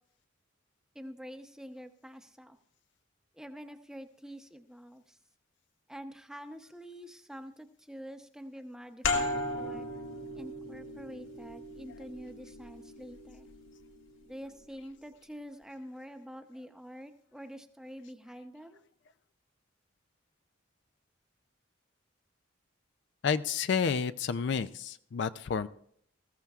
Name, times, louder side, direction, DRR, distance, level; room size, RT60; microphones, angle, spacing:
voice 1, 0.9-2.6 3.3-5.2 5.9-9.9 10.3-13.5 14.2-18.8, equal, 5° right, 6 dB, 0.7 m, -47 dB
sound 1, 9.0-14.3, left 2 dB, 85° left, 2.0 m, -37 dB
voice 2, 23.2-25.7, left 6 dB, 60° left, 13 dB, 0.4 m, -30 dB
20.0 x 15.0 x 2.4 m, 0.64 s
head